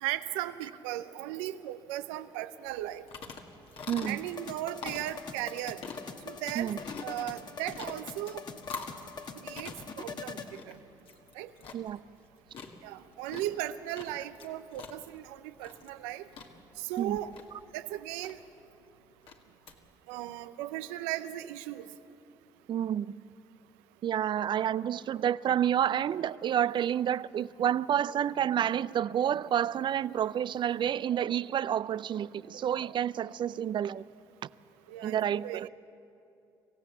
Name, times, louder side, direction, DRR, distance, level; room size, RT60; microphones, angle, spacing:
voice 1, 0.0-3.1 4.1-5.8 6.3-6.7 7.0-8.4 9.4-10.4 10.7-10.8 11.4-11.5 12.8-16.3 16.8-17.3 17.7-18.4 20.1-21.9 34.9-35.7, right 14 dB, 90° right, 0.7 m, -37 dB
sound 1, 2.7-19.8, left 5 dB, 65° left, 2.1 m, -47 dB
voice 2, 3.9-4.2 6.5-6.8 11.7-12.0 17.0-17.2 22.7-23.1 24.0-34.0 35.0-35.7, right 10 dB, 50° right, 0.4 m, -29 dB
sound 2, 4.1-10.5, left 5 dB, 45° left, 1.5 m, -43 dB
26.5 x 16.0 x 7.4 m
supercardioid pair, 60°, 10 cm